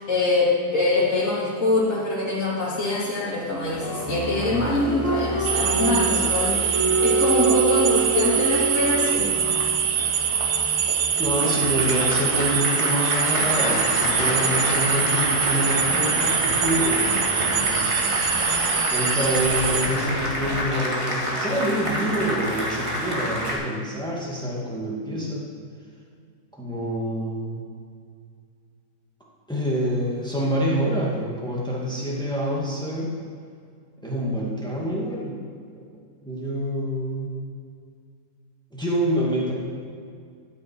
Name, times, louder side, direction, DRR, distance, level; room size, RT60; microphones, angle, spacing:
voice 1, 0.0-9.6, left 2 dB, 50° left, -11 dB, 3.1 m, -24 dB
Applause, 3.6-23.6, right 2 dB, 20° right, 1.9 m, -27 dB
sound 1, 5.4-19.9, right 8 dB, 90° right, 1.5 m, -24 dB
voice 2, 11.2-17.9 18.9-25.5 26.5-27.6 29.5-33.2 34.0-35.4 35.7-35.8 36.2-37.4 38.7-39.5, equal, 5° left, -4 dB, 1.9 m, -27 dB
sound 2, 13.3-20.6, left 2 dB, 70° left, 2.4 m, -32 dB
12.5 x 9.3 x 4.6 m, 2.2 s
omnidirectional pair, 1.7 m